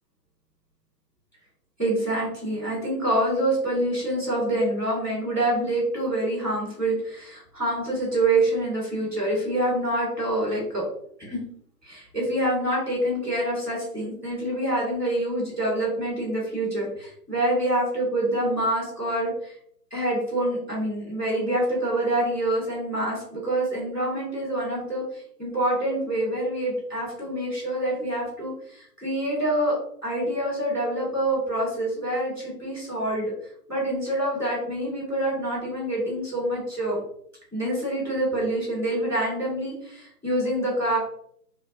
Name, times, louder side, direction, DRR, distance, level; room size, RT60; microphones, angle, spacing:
voice 1, 1.8-10.8 11.2-11.4 11.8-19.5 19.9-25.0 25.4-29.7 30.0-33.3 33.7-37.0 37.5-41.0, right 1 dB, ahead, -17 dB, 1.4 m, -26 dB
5.9 x 2.2 x 2.6 m, 0.68 s
hypercardioid pair, 175°, 49 cm